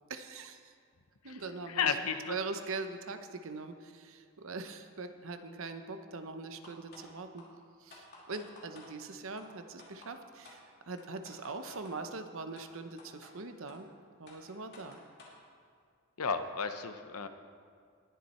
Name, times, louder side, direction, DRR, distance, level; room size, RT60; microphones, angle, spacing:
voice 1, 0.1-0.7 1.2-1.9 2.3-7.4 7.8-13.9 14.2-15.0, right 3 dB, 65° right, 8 dB, 0.8 m, -42 dB
voice 2, 1.7-2.4 16.2-17.3, left 6 dB, 80° left, 9 dB, 0.8 m, -33 dB
sound 1, 6.6-7.1 7.4-7.5 7.9-8.9 9.4-9.5 9.8-10.1 10.4-10.6 11.0-11.9 12.6-12.7 13.0-13.3 13.7-13.8 14.3-15.4, left 3 dB, 50° left, 2.9 m, -53 dB
20.0 x 7.4 x 4.3 m, 2.2 s
head